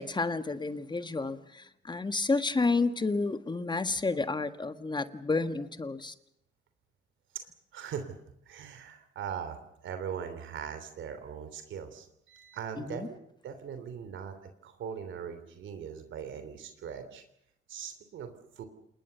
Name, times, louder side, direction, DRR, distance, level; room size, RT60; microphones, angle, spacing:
voice 1, 0.0-6.1 12.8-13.1, left 3 dB, 20° left, 1.6 m, -30 dB
voice 2, 7.7-8.2 8.4-14.4 14.6-17.2 17.7-18.6, right 7 dB, 75° right, 3.2 m, -40 dB
28.0 x 20.0 x 6.9 m
cardioid pair, 90°, 20 cm